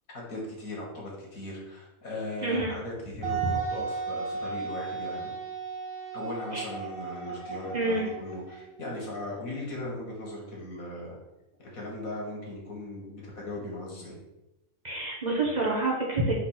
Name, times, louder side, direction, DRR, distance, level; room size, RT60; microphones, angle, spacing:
voice 1, 0.1-5.3 6.1-11.2 11.6-14.2, left 1 dB, 80° left, -3 dB, 2.3 m, -38 dB
voice 2, 2.4-2.7 6.5-6.7 7.7-8.1 14.8-16.4, right 2 dB, 35° right, -2 dB, 1.1 m, -27 dB
Wind instrument woodwind instrument, 3.2-8.8, right 5 dB, 90° right, 1.8 m, -35 dB
5.0 x 3.9 x 5.8 m, 0.93 s
omnidirectional pair, 1.4 m